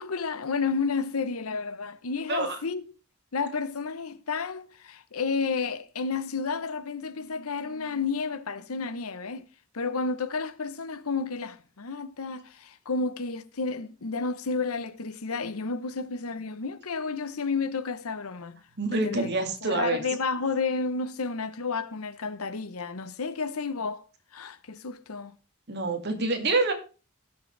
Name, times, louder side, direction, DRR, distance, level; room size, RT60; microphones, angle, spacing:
voice 1, 0.0-2.8 3.3-9.5 9.7-18.6 18.9-24.1 24.3-25.4, left 4 dB, 90° left, 0.9 m, -31 dB
voice 2, 18.8-20.0 25.7-26.7, right 3 dB, 50° right, 2.2 m, -26 dB
17.5 x 6.8 x 3.3 m
head